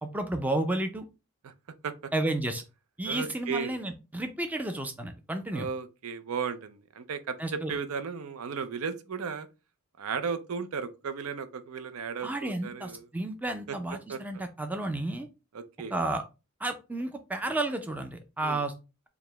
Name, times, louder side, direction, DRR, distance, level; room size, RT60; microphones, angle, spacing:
voice 1, 0.0-1.0 2.1-2.6 3.0-5.7 7.4-7.7 12.2-15.3 15.9-16.2 16.6-18.7, right 2 dB, 5° right, 0.4 m, -32 dB
voice 2, 3.1-3.8 5.5-9.5 10.0-13.1 13.7-13.8 14.1-14.4 15.5-15.9 18.4-18.6, right 6 dB, 80° right, 0.5 m, -35 dB
4.7 x 2.1 x 3.3 m
head